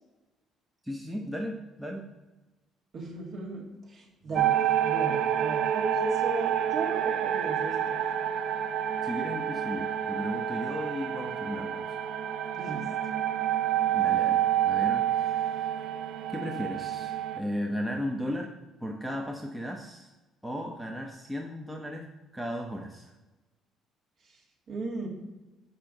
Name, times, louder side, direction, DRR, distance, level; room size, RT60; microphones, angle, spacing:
voice 1, 0.8-2.0 4.3-4.4 9.0-11.8 13.9-15.9 16.3-18.5 18.8-20.1 20.4-23.1, equal, 5° right, 0 dB, 0.6 m, -36 dB
voice 2, 2.9-7.8 12.6-12.8 24.7-25.1, right 2 dB, 45° right, -1 dB, 1.9 m, -36 dB
sound 1, 4.3-17.4, right 10 dB, 70° right, 0.5 m, -28 dB
7.5 x 5.5 x 3.8 m, 1.1 s
cardioid pair, 135°, 0 cm